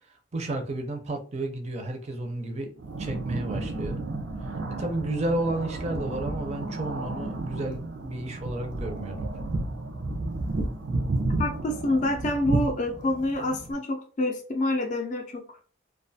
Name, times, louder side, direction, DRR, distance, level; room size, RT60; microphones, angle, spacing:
voice 1, 0.3-2.7 3.0-4.0 4.4-9.3, right 2 dB, 35° right, 4 dB, 0.5 m, -32 dB
sound 1, 2.8-13.7, right 2 dB, 85° right, 0.5 m, -32 dB
voice 2, 11.4-15.3, left 1 dB, 40° left, 3 dB, 0.4 m, -27 dB
2.3 x 2.3 x 2.6 m, 0.40 s
head